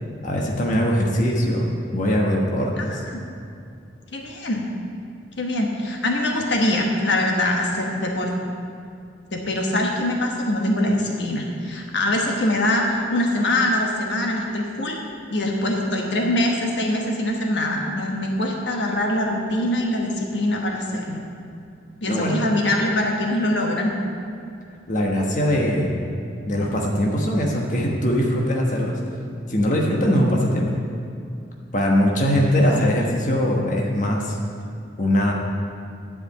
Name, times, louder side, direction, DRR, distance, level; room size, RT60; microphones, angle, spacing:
voice 1, 0.2-2.9 22.1-22.5 24.9-26.0 26.5-29.0 29.5-30.8 31.7-34.4 35.0-35.3, equal, 45° left, -1 dB, 1.2 m, -21 dB
voice 2, 4.1-4.6 5.4-8.3 9.3-15.0 15.3-21.2 22.0-23.9 32.6-32.9, left 1 dB, 70° left, 0 dB, 1.2 m, -23 dB
10.5 x 5.0 x 8.2 m, 2.5 s
head